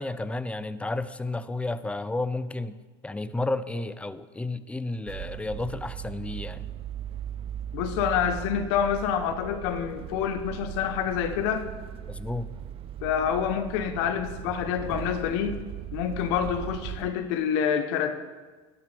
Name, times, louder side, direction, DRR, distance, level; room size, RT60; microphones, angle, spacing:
voice 1, 0.0-2.8 3.0-6.7 12.1-12.5, left 2 dB, 10° left, 15 dB, 0.5 m, -32 dB
sound 1, 5.1-17.1, right 10 dB, 40° right, 0.6 m, -38 dB
voice 2, 7.7-11.7 13.0-15.6 15.9-18.1, left 8 dB, 70° left, 9 dB, 1.0 m, -27 dB
12.0 x 10.0 x 3.4 m, 1.3 s
hypercardioid pair, 90°, 14 cm